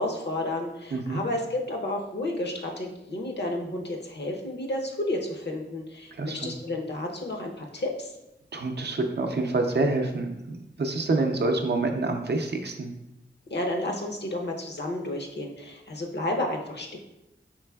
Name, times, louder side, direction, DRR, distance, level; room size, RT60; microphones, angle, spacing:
voice 1, 0.0-8.1 13.5-17.0, left 1 dB, 55° left, 1 dB, 0.7 m, -31 dB
voice 2, 0.9-1.2 6.1-6.5 8.5-12.9, right 2 dB, 55° right, 4 dB, 0.5 m, -27 dB
4.5 x 3.3 x 2.3 m, 0.91 s
wide cardioid pair, 55°, 21 cm